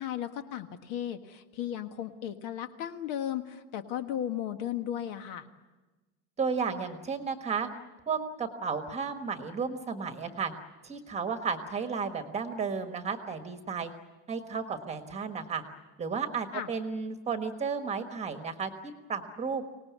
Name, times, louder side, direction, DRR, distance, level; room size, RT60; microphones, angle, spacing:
voice 1, 0.0-5.5 16.5-16.7, left 10 dB, 55° left, 8 dB, 1.6 m, -35 dB
voice 2, 6.4-7.7 8.1-10.5 10.8-13.9 14.3-15.6 16.0-18.7 19.1-19.6, right 5 dB, 15° right, 7 dB, 1.4 m, -33 dB
25.0 x 19.0 x 9.4 m, 1.2 s
cardioid pair, 175°, 37 cm